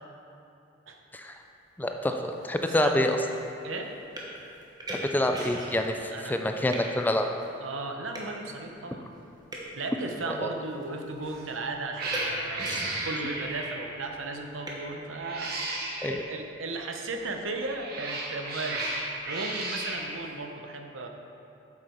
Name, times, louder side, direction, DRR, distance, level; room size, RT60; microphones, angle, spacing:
voice 1, 1.8-3.2 5.1-7.3 10.4-10.5 12.7-12.8 16.0-16.2, left 1 dB, 10° left, 5 dB, 0.4 m, -27 dB
sound 1, 2.0-2.1 2.4-6.0 6.3-6.9 7.4-7.5 8.1-8.3 9.2-9.8 10.5-10.9 11.1-11.5 12.0-12.2 12.6-13.3 14.7-14.8, right 1 dB, 20° right, 1.1 m, -39 dB
voice 2, 2.6-2.9 3.6-4.0 6.1-6.4 7.6-9.0 9.7-18.9 19.3-21.1, right 3 dB, 85° right, 3 dB, 0.9 m, -36 dB
Cat, 11.2-11.5 11.9-14.0 15.1-16.2 17.5-20.1, right 2 dB, 50° right, 1.3 m, -34 dB
8.0 x 7.5 x 4.6 m, 2.7 s
head